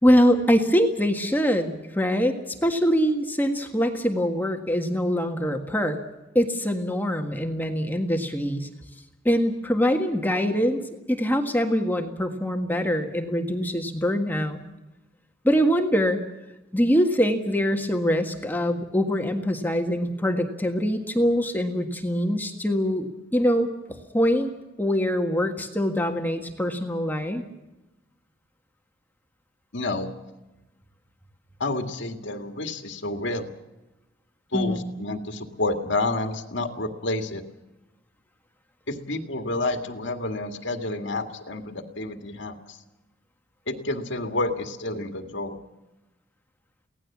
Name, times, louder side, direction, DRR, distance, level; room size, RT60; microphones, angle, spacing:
voice 1, 0.0-6.0 6.3-8.7 9.2-10.8 11.1-14.6 15.4-16.2 16.7-24.5 24.8-27.4 34.5-34.9, equal, 10° left, 4 dB, 1.6 m, -23 dB
voice 2, 29.7-30.1 31.6-33.5 34.5-37.4 38.9-42.8 43.7-45.6, left 2 dB, 65° left, 5 dB, 2.0 m, -29 dB
24.0 x 17.5 x 7.2 m, 1.0 s
head